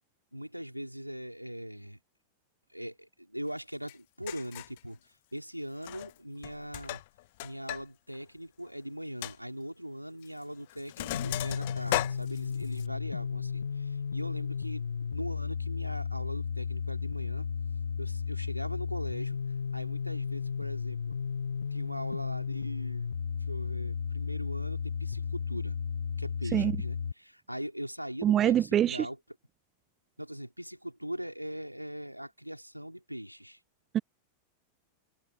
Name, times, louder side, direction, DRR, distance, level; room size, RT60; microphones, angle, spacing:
voice 1, 0.3-2.0 2.7-5.0 5.3-7.0 7.4-17.5 18.0-19.4 19.7-21.2 21.7-23.1 23.5-25.8 26.2-29.2 30.2-33.6, equal, 90° right, 3.5 m, -40 dB
Sink (filling or washing), 3.9-4.0 4.3-4.8 5.8-6.2 6.4-7.8 8.1-8.2 8.7-8.8 9.2-9.4 10.2-10.4 10.7-12.9, left 18 dB, 50° left, 0.4 m, -36 dB
sound 1, 11.1-27.1, left 6 dB, 70° left, 0.7 m, -34 dB
voice 2, 28.2-29.1 33.9-34.0, right 11 dB, 30° right, 0.6 m, -25 dB
figure-of-eight pair, 90°, 0 cm